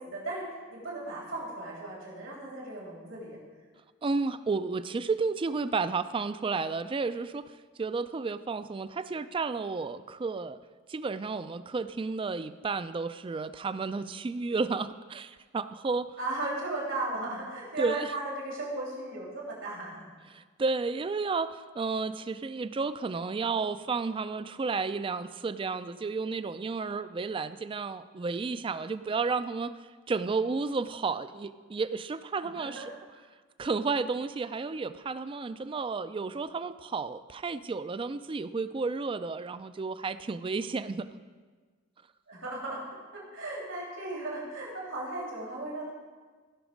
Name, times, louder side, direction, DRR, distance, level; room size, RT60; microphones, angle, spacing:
voice 1, 0.0-3.4 16.2-20.1 32.5-32.9 42.3-42.8 43.1-45.9, right 2 dB, 85° right, -4 dB, 3.3 m, -36 dB
voice 2, 4.0-7.5 7.8-10.6 10.9-16.1 17.8-18.1 20.3-29.7 30.1-32.8 33.6-41.1, right 4 dB, 25° right, 13 dB, 0.3 m, -32 dB
16.0 x 6.1 x 5.2 m, 1.5 s
head